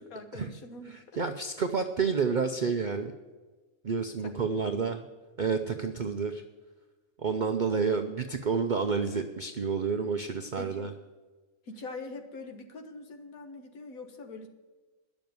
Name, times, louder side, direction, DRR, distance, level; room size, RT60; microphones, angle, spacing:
voice 1, 0.0-1.2 4.2-4.3 4.6-4.8 10.6-10.9 11.7-14.5, left 3 dB, 75° left, 6 dB, 1.7 m, -43 dB
voice 2, 1.2-3.1 3.8-5.1 5.4-6.4 7.2-10.9, right 5 dB, 45° right, 6 dB, 0.6 m, -29 dB
10.5 x 7.1 x 9.3 m, 1.3 s
omnidirectional pair, 1.5 m